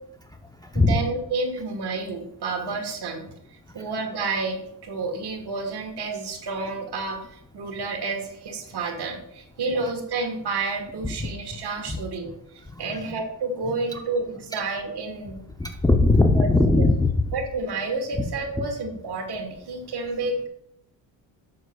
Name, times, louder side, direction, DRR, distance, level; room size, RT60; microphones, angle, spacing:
voice 1, 0.2-1.0 3.8-3.9 9.7-9.8 11.2-11.3 11.9-12.3 12.6-13.2 13.9-14.0 15.6-17.1 18.1-18.2 18.6-18.7, left 2 dB, 10° left, 4 dB, 0.6 m, -22 dB
voice 2, 0.7-3.3 3.7-7.2 7.5-12.3 12.8-15.4 16.3-16.5 17.3-20.5, right 3 dB, 60° right, 5 dB, 1.4 m, -30 dB
7.9 x 6.4 x 2.3 m, 0.77 s
cardioid pair, 85°, 45 cm